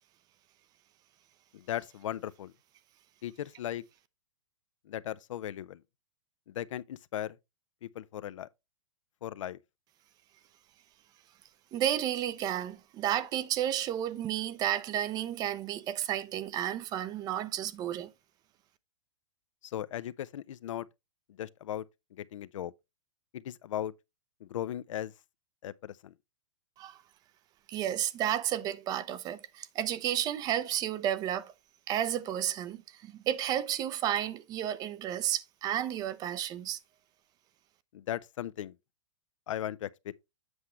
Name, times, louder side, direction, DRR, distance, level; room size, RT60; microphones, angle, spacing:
voice 1, 1.5-2.5 3.2-3.8 4.9-5.8 6.5-7.4 7.8-8.5 9.2-9.6 19.6-20.9 21.4-21.8 22.1-22.7 23.3-23.9 24.4-25.1 25.6-26.1 37.9-38.7 39.5-40.1, left 11 dB, 80° left, 0.5 m, -37 dB
voice 2, 11.7-18.1 26.8-27.0 27.7-31.5 31.9-36.8, right 11 dB, 25° right, 0.5 m, -32 dB
7.9 x 5.8 x 3.1 m
hypercardioid pair, 145°, 16 cm